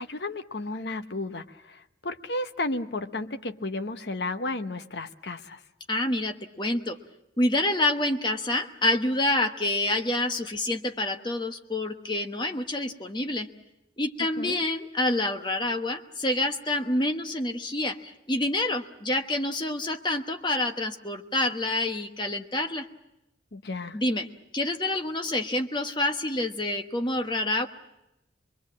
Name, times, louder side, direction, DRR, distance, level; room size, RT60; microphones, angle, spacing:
voice 1, 0.0-5.6 14.4-14.6 23.5-24.0, left 2 dB, 65° left, 8 dB, 1.0 m, -33 dB
voice 2, 5.9-7.0 7.4-13.5 14.0-22.9 23.9-27.7, left 1 dB, 25° left, 5 dB, 1.2 m, -27 dB
25.0 x 22.5 x 7.4 m, 0.91 s
head